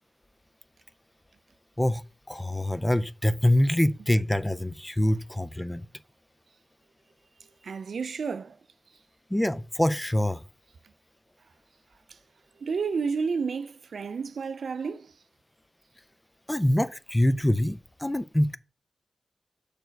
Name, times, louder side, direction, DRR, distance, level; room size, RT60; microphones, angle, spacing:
voice 1, 1.8-5.8 9.3-10.4 16.5-18.6, left 1 dB, 10° left, 0.4 m, -25 dB
voice 2, 7.6-8.6 12.1-12.2 12.6-15.1, right 5 dB, 80° right, 0.4 m, -31 dB
6.6 x 4.6 x 4.5 m
wide cardioid pair, 110°, 0 cm